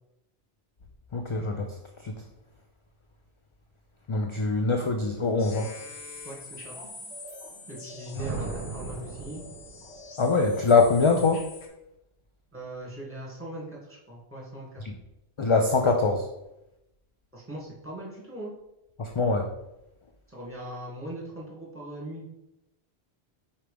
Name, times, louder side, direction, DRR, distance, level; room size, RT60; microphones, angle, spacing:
voice 1, 1.1-1.7 2.0-2.1 4.1-5.7 10.2-11.5 15.4-16.3 19.0-19.5, left 4 dB, 40° left, 3 dB, 0.4 m, -23 dB
sound 1, 5.4-11.7, left 2 dB, 85° left, 1.3 m, -44 dB
voice 2, 6.2-6.7 7.7-9.4 12.5-14.8 17.3-18.5 20.3-22.2, right 1 dB, 10° right, -4 dB, 2.1 m, -40 dB
sound 2, 8.2-10.1, right 3 dB, 60° right, 0.8 m, -37 dB
4.8 x 4.4 x 5.1 m, 0.90 s
omnidirectional pair, 1.1 m